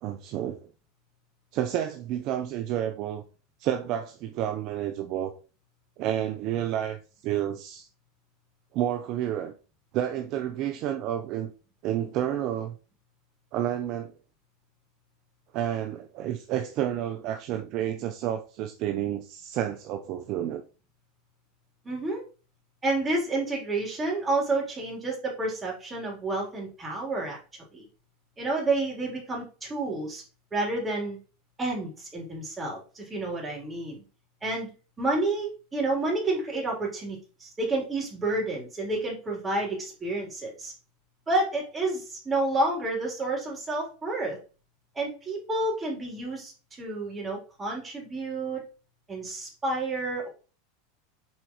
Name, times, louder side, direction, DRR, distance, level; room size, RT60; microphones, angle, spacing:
voice 1, 0.0-0.7 1.5-3.2 3.6-5.3 6.0-7.0 7.2-7.9 8.7-9.5 9.9-11.5 11.8-12.8 13.5-14.1 15.5-20.6, right 11 dB, 50° right, 0.7 m, -30 dB
voice 2, 21.8-22.2 22.8-27.4 27.7-27.9 28.4-30.2 30.5-31.2 31.6-34.0 34.4-34.7 35.0-40.7 41.3-44.4 44.9-46.5 46.8-48.6 49.1-50.3, right 2 dB, 20° right, 3.7 m, -29 dB
7.4 x 4.6 x 3.1 m
hypercardioid pair, 105°, 0 cm